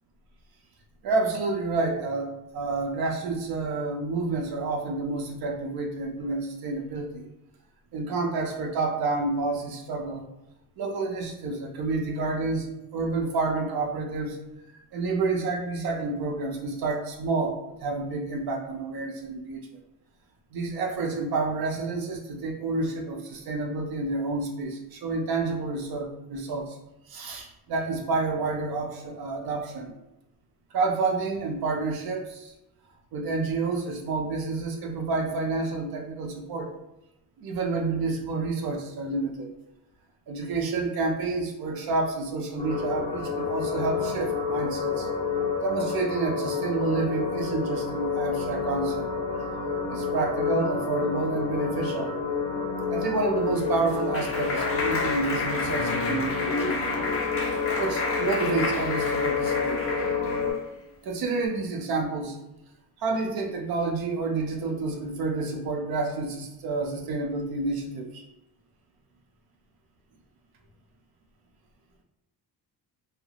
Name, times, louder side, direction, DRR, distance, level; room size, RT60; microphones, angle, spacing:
voice 1, 1.0-7.3 7.9-10.2 10.8-12.7 12.9-14.4 14.9-19.7 20.5-26.8 27.1-30.0 30.7-32.5 33.1-36.7 37.4-39.5 40.3-45.1 45.6-49.1 49.9-52.1 52.9-56.9 57.8-59.8 61.0-62.4 63.0-68.2, right 3 dB, 60° right, 2 dB, 0.6 m, -29 dB
sound 1, 42.6-60.5, left 5 dB, 15° left, 0.7 m, -29 dB
Clapping, 53.3-60.6, left 2 dB, 35° left, 0.4 m, -31 dB
2.3 x 2.0 x 2.8 m, 0.92 s
cardioid pair, 150°, 41 cm